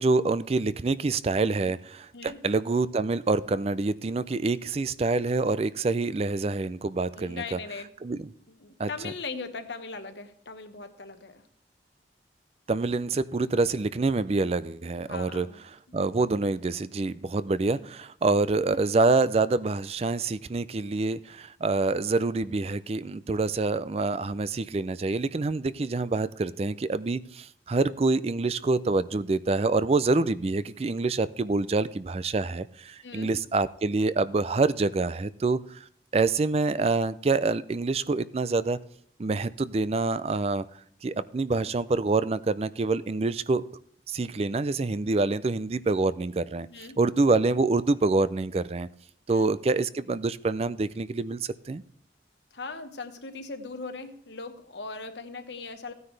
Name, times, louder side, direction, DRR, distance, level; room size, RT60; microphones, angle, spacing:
voice 1, 0.0-7.6 8.0-8.2 8.8-9.1 12.7-15.5 15.9-35.8 36.1-38.8 39.2-40.7 41.0-43.7 44.1-48.9 49.3-51.8, right 3 dB, 35° right, 15 dB, 0.4 m, -26 dB
voice 2, 7.1-7.9 8.5-11.4 15.1-16.0 17.7-17.9 33.0-33.3 46.7-47.0 49.3-49.5 52.5-55.9, left 4 dB, 85° left, 8 dB, 1.3 m, -39 dB
15.5 x 9.5 x 3.3 m, 0.65 s
head